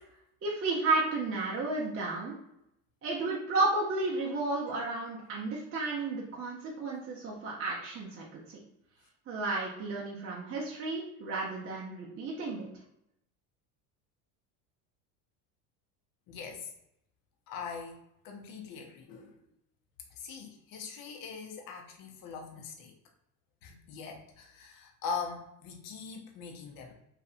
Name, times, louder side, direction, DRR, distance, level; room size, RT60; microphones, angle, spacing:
voice 1, 0.4-2.3 3.0-8.6 9.3-12.7, right 3 dB, 30° right, -4 dB, 0.6 m, -32 dB
voice 2, 16.3-16.7 17.5-19.3 20.1-22.9 23.6-26.9, left 5 dB, 45° left, 2 dB, 0.7 m, -42 dB
2.7 x 2.4 x 2.4 m, 0.79 s
supercardioid pair, 95°, 46 cm